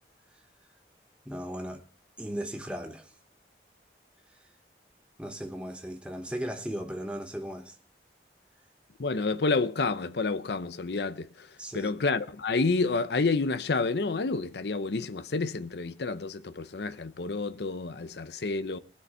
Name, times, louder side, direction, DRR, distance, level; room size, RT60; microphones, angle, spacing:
voice 1, 1.2-1.8 2.2-3.1 4.3-4.4 5.2-7.8 11.6-12.0, equal, 5° right, 1.0 m, -37 dB
voice 2, 9.0-11.5 11.7-18.8, left 3 dB, 70° left, 0.6 m, -29 dB
20.0 x 6.7 x 5.5 m
head